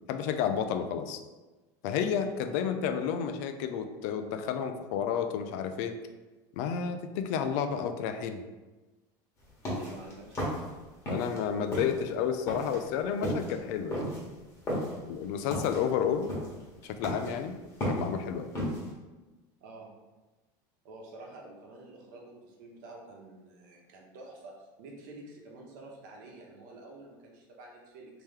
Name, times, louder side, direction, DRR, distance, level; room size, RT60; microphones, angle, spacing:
voice 1, 0.1-1.2 1.8-6.0 6.6-8.4 11.1-14.3 15.0-16.3 16.8-17.6 17.9-18.5, left 7 dB, 65° left, 8 dB, 0.4 m, -31 dB
sound 1, 9.4-11.4 11.7-18.9, equal, 30° left, 1.2 m, -34 dB
voice 2, 9.7-10.5 19.6-19.9 20.8-28.2, right 2 dB, 80° right, -2 dB, 1.0 m, -49 dB
3.2 x 2.9 x 3.6 m, 1.2 s
supercardioid pair, 145°, 10 cm